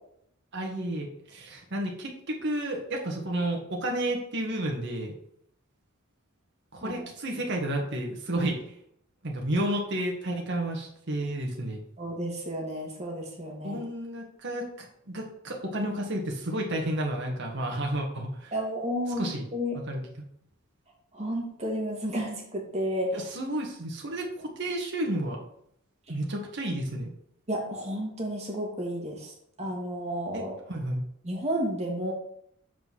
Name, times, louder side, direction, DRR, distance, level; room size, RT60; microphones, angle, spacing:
voice 1, 0.5-5.1 6.7-8.6 9.2-11.8 13.6-18.5 19.2-19.5 19.9-20.0 23.1-25.4 26.1-27.1 30.3-31.0, right 1 dB, 60° right, 0 dB, 1.8 m, -31 dB
voice 2, 12.0-13.8 18.5-19.8 21.1-23.3 27.5-29.3 29.6-30.5 31.2-32.1, equal, 30° right, 0 dB, 2.3 m, -32 dB
7.8 x 5.1 x 6.3 m, 0.71 s
head